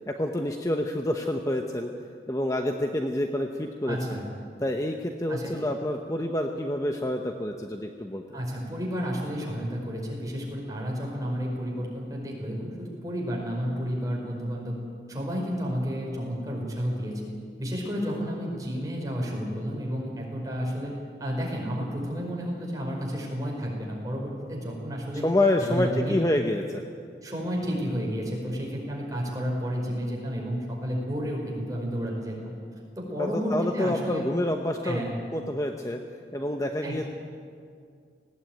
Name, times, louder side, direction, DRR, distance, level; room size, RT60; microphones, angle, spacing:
voice 1, 0.1-1.9 2.3-4.2 4.6-8.4 25.2-26.8 33.2-35.0 35.3-36.0 36.3-37.0, left 1 dB, 20° left, 3 dB, 0.9 m, -28 dB
voice 2, 3.9-4.3 5.3-5.7 8.3-14.8 15.1-17.3 17.6-20.9 21.2-25.3 25.6-26.3 27.2-32.5 33.0-34.2 34.8-35.1 36.8-37.0, equal, 20° right, -2 dB, 5.2 m, -31 dB
19.0 x 17.0 x 9.1 m, 2.2 s
head